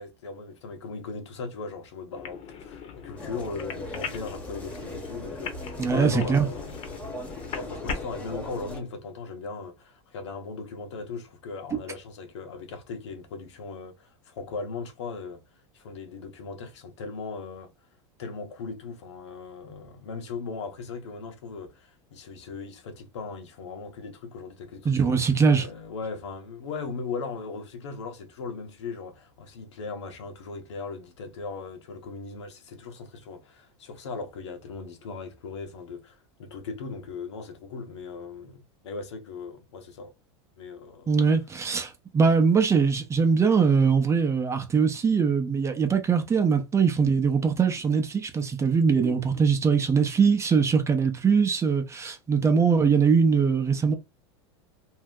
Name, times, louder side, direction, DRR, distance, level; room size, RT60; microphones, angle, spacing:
voice 1, 0.0-6.8 7.5-15.4 15.7-17.7 18.2-25.2 25.6-40.1 40.6-41.1, left 4 dB, 85° left, 1.0 m, -38 dB
sound 1, 2.1-8.0, left 6 dB, 40° left, 0.8 m, -39 dB
sound 2, 3.2-8.8, left 1 dB, 10° left, 1.0 m, -40 dB
voice 2, 5.8-6.5 24.8-25.7 41.1-53.9, right 5 dB, 20° right, 0.6 m, -22 dB
2.7 x 2.1 x 3.6 m
supercardioid pair, 115°, 14 cm